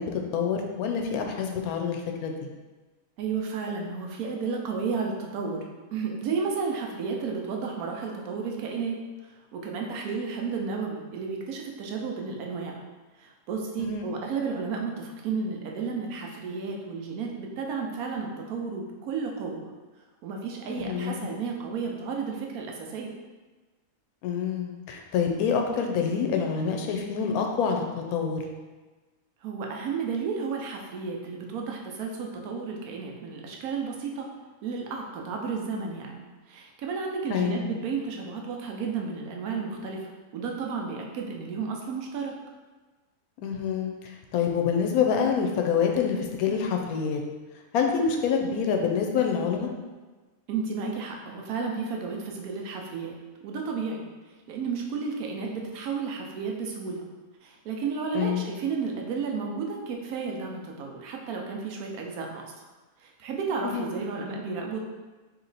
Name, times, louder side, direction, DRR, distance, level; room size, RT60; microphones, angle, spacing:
voice 1, 0.0-2.3 13.8-14.1 20.7-21.3 24.2-27.8 28.1-28.4 37.3-37.6 43.4-43.9 44.3-47.2 47.7-49.7 58.1-58.4 63.6-63.9, left 6 dB, 90° left, 3 dB, 1.1 m, -26 dB
voice 2, 3.2-5.6 5.9-9.0 9.2-12.8 13.2-19.7 20.2-23.1 29.4-34.3 34.6-42.3 46.5-46.6 50.5-53.1 53.4-54.0 54.5-57.0 57.4-62.7 63.0-64.9, right 5 dB, 90° right, 1 dB, 1.1 m, -32 dB
3.0 x 3.0 x 3.9 m, 1.3 s
omnidirectional pair, 1.5 m